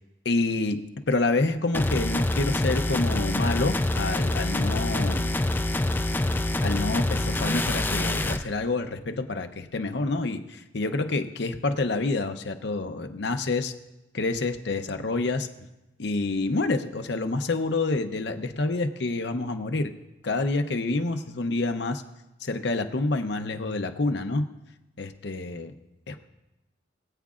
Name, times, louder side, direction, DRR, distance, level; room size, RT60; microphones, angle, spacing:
voice 1, 0.2-0.8 1.1-5.3 6.6-13.7 14.1-15.5 16.0-19.9 20.2-22.0 22.4-24.4 25.0-25.7 26.1-26.2, left 3 dB, 65° left, 7 dB, 0.7 m, -28 dB
sound 1, 1.7-8.4, left 1 dB, 10° left, 0.3 m, -26 dB
21.0 x 8.5 x 2.5 m, 0.98 s
head